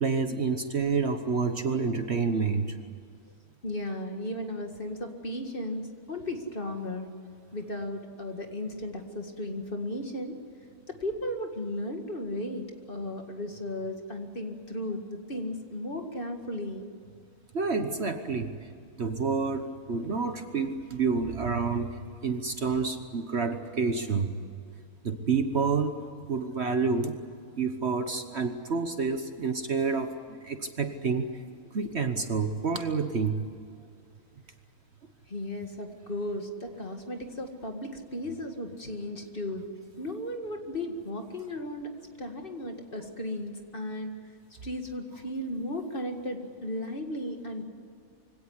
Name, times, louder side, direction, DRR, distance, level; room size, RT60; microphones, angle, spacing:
voice 1, 0.0-2.8 17.5-18.5 19.0-24.3 25.0-27.2 27.6-31.3 31.7-33.4, right 5 dB, 50° right, 8 dB, 1.3 m, -29 dB
voice 2, 3.6-5.8 6.1-7.1 7.5-10.4 10.9-16.9 35.3-39.7 40.0-41.9 42.2-44.1 44.6-47.6, left 1 dB, 35° left, 4 dB, 2.2 m, -35 dB
24.5 x 17.5 x 9.7 m, 2.4 s
omnidirectional pair, 1.6 m